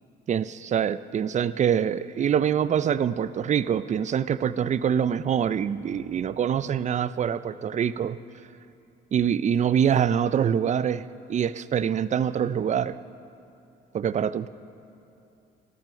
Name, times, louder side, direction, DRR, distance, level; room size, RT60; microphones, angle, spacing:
voice 1, 0.3-8.2 9.1-11.0 11.3-13.0 13.9-14.5, right 8 dB, 35° right, 16 dB, 0.4 m, -25 dB
13.5 x 9.1 x 6.6 m, 2.7 s
cardioid pair, 90°, 20 cm